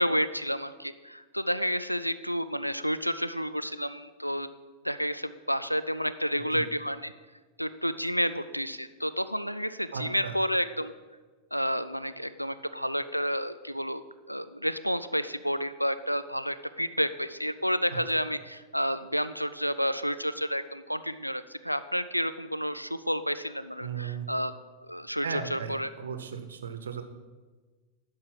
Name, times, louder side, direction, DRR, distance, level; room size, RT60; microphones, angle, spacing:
voice 1, 0.0-4.5 4.8-7.1 7.6-10.9 11.5-24.5 24.9-25.9, equal, 90° left, 13 dB, 0.4 m, -30 dB
voice 2, 9.9-10.3 17.9-18.0 23.8-24.3 25.2-27.0, right 6 dB, 70° right, 8 dB, 1.0 m, -36 dB
12.0 x 4.8 x 7.5 m, 1.3 s
figure-of-eight pair, 90°, 0 cm